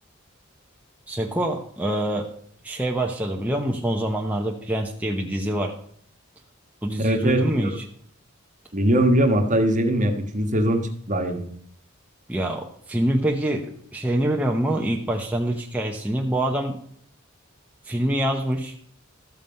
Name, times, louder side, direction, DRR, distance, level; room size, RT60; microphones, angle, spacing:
voice 1, 1.1-2.3 2.6-5.8 6.8-7.7 12.3-16.8 17.9-18.7, right 1 dB, 10° right, 0 dB, 0.8 m, -25 dB
voice 2, 7.0-7.7 8.7-10.8 11.1-11.4, right 1 dB, 35° right, 5 dB, 1.4 m, -21 dB
13.0 x 7.5 x 5.3 m, 0.63 s
head